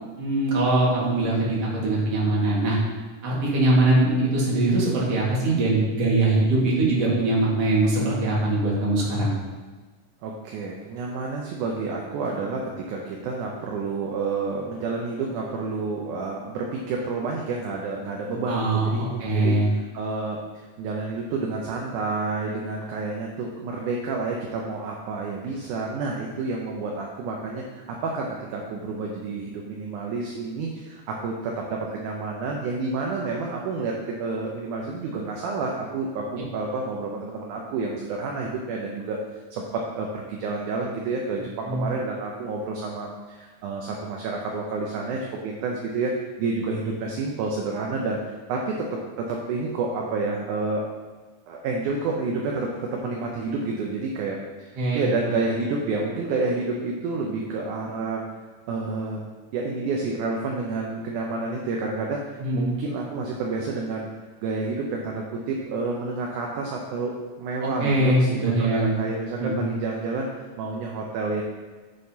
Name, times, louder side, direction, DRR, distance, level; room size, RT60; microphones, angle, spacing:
voice 1, 0.2-2.8 3.2-9.4 18.5-19.7 41.7-41.8 54.8-55.1 62.4-62.7 67.6-69.0 69.4-69.6, right 2 dB, 50° right, -5 dB, 2.7 m, -22 dB
voice 2, 10.2-20.4 20.8-39.2 39.5-50.8 51.5-58.2 58.7-59.2 59.5-64.1 64.4-71.4, right 3 dB, 75° right, -1 dB, 2.1 m, -29 dB
9.6 x 6.6 x 2.8 m, 1.3 s
omnidirectional pair, 4.0 m